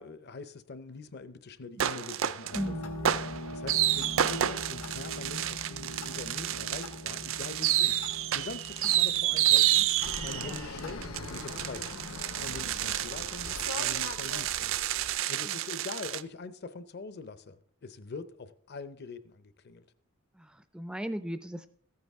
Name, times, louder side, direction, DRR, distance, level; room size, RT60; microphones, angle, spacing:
voice 1, 0.0-9.9 10.2-19.9, left 4 dB, 50° left, 0.6 m, -44 dB
sound 1, 1.8-2.6 3.0-16.2, right 12 dB, 65° right, 0.4 m, -29 dB
sound 2, 2.5-11.7, left 1 dB, 90° left, 1.6 m, -42 dB
Fixed-wing aircraft airplane, 10.0-15.2, left 3 dB, 75° left, 1.0 m, -41 dB
voice 2, 20.3-21.7, equal, 5° right, 0.3 m, -37 dB
14.5 x 9.6 x 3.5 m
head